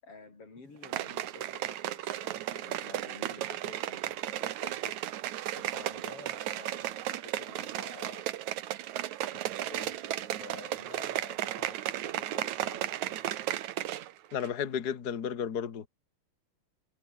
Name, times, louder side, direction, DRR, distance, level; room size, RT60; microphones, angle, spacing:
voice 1, 0.0-5.0 5.5-8.3 9.3-13.2, left 3 dB, 35° left, 6.5 m, -51 dB
sound 1, 0.8-14.1 14.4-14.5, right 13 dB, 65° right, 1.9 m, -35 dB
voice 2, 14.3-15.9, left 8 dB, 80° left, 0.8 m, -33 dB
omnidirectional pair, 4.6 m